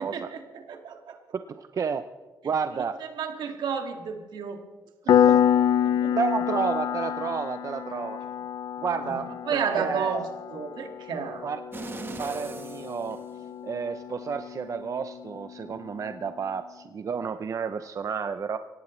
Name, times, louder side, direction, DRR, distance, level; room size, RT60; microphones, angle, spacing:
voice 1, 0.0-1.2 3.2-4.6 5.1-5.4 5.8-6.2 9.0-11.4, right 6 dB, 80° right, 4 dB, 2.1 m, -32 dB
voice 2, 1.3-2.1 2.4-3.0 5.1-5.3 6.2-8.2 8.8-10.2 11.4-11.6 12.2-13.2 13.6-18.6, right 6 dB, 45° right, 9 dB, 0.6 m, -31 dB
Piano, 5.1-15.5, left 9 dB, 75° left, 0.5 m, -27 dB
sound 1, 11.7-13.9 14.3-14.4, right 3 dB, 30° right, 1.3 m, -39 dB
23.0 x 17.5 x 3.2 m, 1.3 s
cardioid pair, 100°, 7 cm